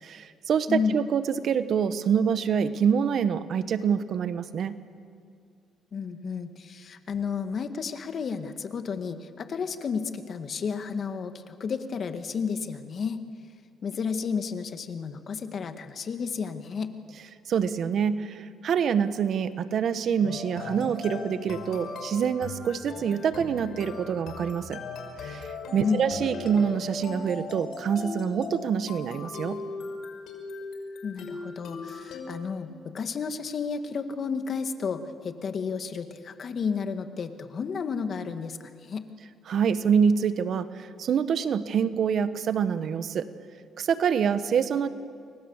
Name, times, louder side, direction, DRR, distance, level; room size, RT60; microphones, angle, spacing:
voice 1, 0.0-4.8 17.5-24.8 25.2-29.6 39.5-43.3 43.8-44.9, right 7 dB, 60° right, 12 dB, 1.3 m, -26 dB
voice 2, 5.9-13.2 13.8-16.9 25.8-26.0 31.0-39.0, left 6 dB, 50° left, 8 dB, 2.0 m, -32 dB
sound 1, 20.2-32.3, left 4 dB, 70° left, 5.7 m, -38 dB
29.5 x 23.5 x 7.3 m, 2.2 s
cardioid pair, 90°, 0 cm